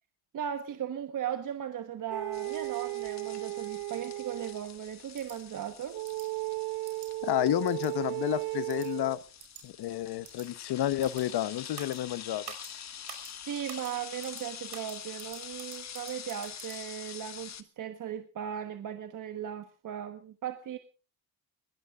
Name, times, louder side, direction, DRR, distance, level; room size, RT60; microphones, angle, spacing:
voice 1, 0.3-6.0 12.9-13.0 13.4-20.8, right 9 dB, 55° right, 8 dB, 1.3 m, -37 dB
sound 1, 2.1-4.7 5.9-9.2, right 20 dB, 70° right, 0.7 m, -35 dB
sound 2, 2.3-17.6, left 9 dB, 45° left, 1.3 m, -46 dB
sound 3, 5.2-5.4 6.0-6.3 6.9-7.1 7.7-7.9 8.7-8.9 9.4-9.6 10.2-10.5 11.0-11.2 11.7-12.0 12.4-12.7 13.1-13.3 13.7-13.9 14.2-14.4 14.7-16.8, right 10 dB, 90° right, 5.7 m, -47 dB
voice 2, 7.2-9.2 9.6-12.4, left 13 dB, 80° left, 16 dB, 1.0 m, -30 dB
22.5 x 18.0 x 2.5 m, 0.35 s
cardioid pair, 175°, 38 cm